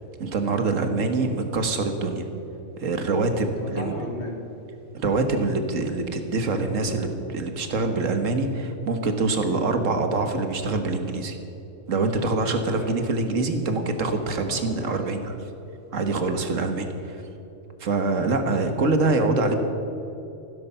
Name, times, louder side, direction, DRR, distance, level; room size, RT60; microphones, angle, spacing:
voice 1, 0.2-2.3 2.8-3.9 4.9-11.4 11.9-15.3 15.9-17.2 17.8-19.6, right 3 dB, 80° right, 6 dB, 1.8 m, -25 dB
voice 2, 3.3-4.4 12.8-13.0 14.4-15.2 19.3-19.6, left 2 dB, 45° left, 2 dB, 2.3 m, -35 dB
15.0 x 13.0 x 5.6 m, 3.0 s
omnidirectional pair, 1.3 m